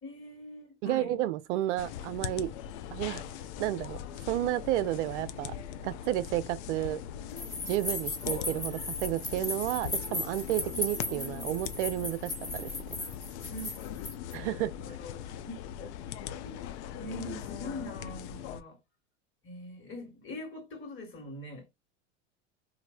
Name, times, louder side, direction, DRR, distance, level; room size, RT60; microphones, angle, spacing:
voice 1, 0.0-1.2 13.5-13.8 14.8-15.9 16.4-16.7 16.9-18.8 19.4-21.7, left 1 dB, 35° left, 1.6 m, -43 dB
voice 2, 0.8-2.5 2.9-3.2 3.6-4.0 4.2-5.5 5.8-7.0 7.7-12.7 14.3-14.7, right 14 dB, 70° right, 0.5 m, -31 dB
sound 1, 1.8-18.6, left 10 dB, 65° left, 0.5 m, -41 dB
sound 2, 7.4-14.3, left 2 dB, 10° left, 1.0 m, -37 dB
3.1 x 2.6 x 2.5 m
hypercardioid pair, 95°, 37 cm